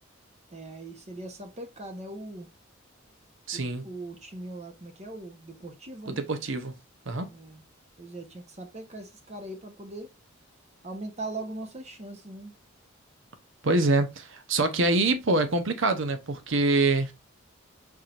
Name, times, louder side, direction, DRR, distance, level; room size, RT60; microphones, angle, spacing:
voice 1, 0.5-2.5 3.5-6.2 7.3-7.6 8.0-10.1 10.8-12.6, right 2 dB, 35° right, 1.0 m, -40 dB
voice 2, 3.5-3.8 6.1-6.7 7.1-7.3 13.6-17.1, right 2 dB, 65° right, 0.9 m, -25 dB
4.8 x 4.4 x 2.5 m
head